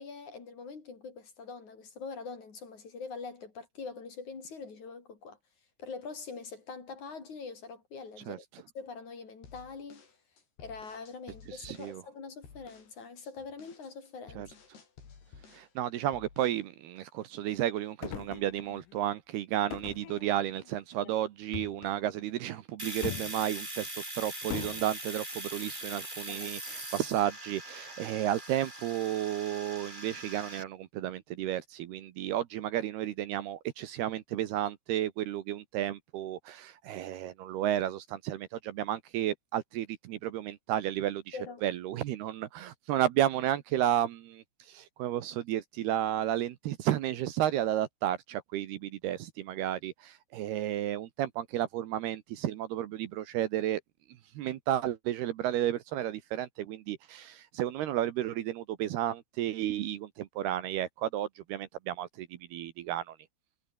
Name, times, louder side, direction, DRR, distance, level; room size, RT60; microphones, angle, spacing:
voice 1, 0.0-5.4 5.8-8.4 8.8-10.1 10.6-14.5 21.0-21.1 26.3-26.5 41.3-41.6, left 4 dB, 45° left, 5.1 m, -44 dB
sound 1, 9.4-12.0 12.4-12.9 13.3-15.7 16.1-16.7, left 6 dB, 65° left, 6.9 m, -54 dB
voice 2, 11.5-12.0 14.4-14.5 15.5-41.3 41.6-53.8 54.4-63.2, right 12 dB, 70° right, 3.0 m, -32 dB
sound 2, 18.0-18.9 19.7-20.7 21.5-22.0 23.0-23.4 24.5-24.8, left 15 dB, 85° left, 1.8 m, -40 dB
Domestic sounds home sounds, 22.8-30.6, right 1 dB, 10° right, 6.7 m, -41 dB
omnidirectional pair, 5.1 m